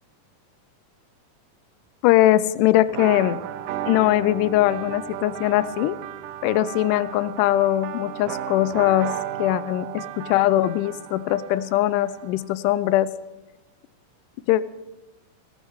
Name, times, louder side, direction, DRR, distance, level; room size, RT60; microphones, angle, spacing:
voice 1, 2.0-3.4 3.9-6.0 6.4-13.1 14.5-14.6, left 14 dB, 80° left, 17 dB, 2.0 m, -21 dB
sound 1, 2.9-12.5, right 11 dB, 80° right, 2.2 m, -34 dB
18.0 x 11.0 x 4.8 m, 1.1 s
omnidirectional pair, 3.9 m